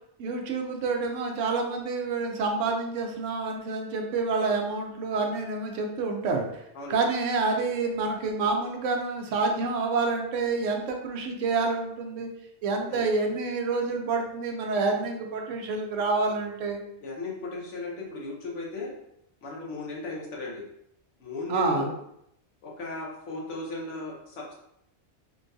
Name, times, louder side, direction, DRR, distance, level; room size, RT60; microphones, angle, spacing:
voice 1, 0.2-6.6 6.9-12.3 12.6-16.8 21.5-21.9, right 3 dB, 90° right, 2 dB, 1.0 m, -28 dB
voice 2, 17.0-18.9 19.4-20.6 21.2-21.9 22.6-24.6, left 3 dB, 75° left, -2 dB, 1.1 m, -36 dB
3.7 x 2.2 x 2.6 m, 0.75 s
omnidirectional pair, 1.2 m